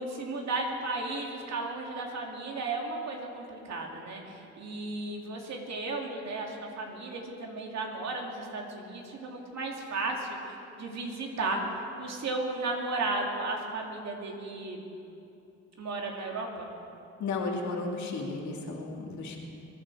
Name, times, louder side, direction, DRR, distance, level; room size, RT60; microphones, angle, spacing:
voice 1, 0.0-11.6 12.0-14.9 15.8-16.7, right 3 dB, 60° right, 0 dB, 2.9 m, -34 dB
voice 2, 17.2-19.4, left 3 dB, 70° left, 1 dB, 2.5 m, -34 dB
23.0 x 10.0 x 5.0 m, 2.7 s
cardioid pair, 90°, 30 cm